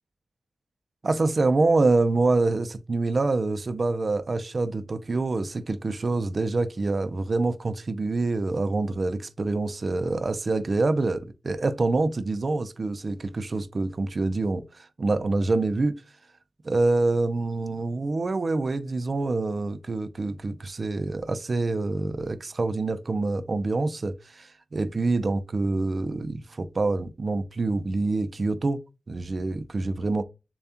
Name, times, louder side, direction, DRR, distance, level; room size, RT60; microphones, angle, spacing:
voice 1, 1.0-16.0 16.6-28.8 29.1-30.2, right 3 dB, 45° right, 0.5 m, -26 dB
7.0 x 2.3 x 2.8 m
wide cardioid pair, 130°, 0 cm